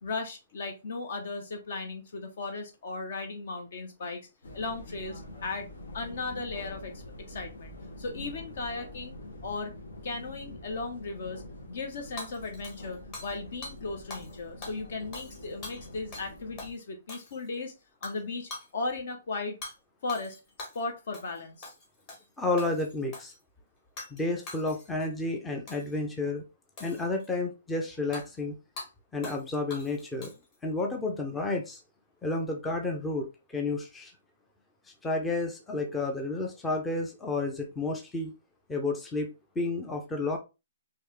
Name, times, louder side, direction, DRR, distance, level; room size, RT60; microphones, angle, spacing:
voice 1, 0.0-4.3 4.5-5.7 5.9-7.0 7.3-9.2 9.4-9.7 10.0-17.7 18.0-19.6 20.0-20.4 20.7-21.7, left 3 dB, 55° left, 5 dB, 0.7 m, -36 dB
sound 1, 4.4-16.7, left 1 dB, 85° left, 1.2 m, -45 dB
Hammer / Shatter, 12.2-13.4 13.6-13.8 14.1-14.3 14.6-16.3 16.6-16.7 17.1-17.5 18.0-18.2 18.5-18.7 19.6-19.7 20.1-20.8 21.1-21.4 21.6-22.2 22.6-23.4 24.0-24.2 24.5-25.1 25.7-26.0 26.8-27.3 28.1-28.2 28.8-28.9 29.2-29.4 29.7-30.5, left 2 dB, 25° left, 1.2 m, -43 dB
voice 2, 22.4-23.3 24.1-26.4 26.8-28.5 29.1-30.3 30.6-31.8 32.2-34.1 35.0-38.3 38.7-40.4, left 2 dB, 5° left, 2 dB, 0.5 m, -31 dB
3.6 x 2.8 x 3.1 m, 0.27 s
hypercardioid pair, 165°, 0 cm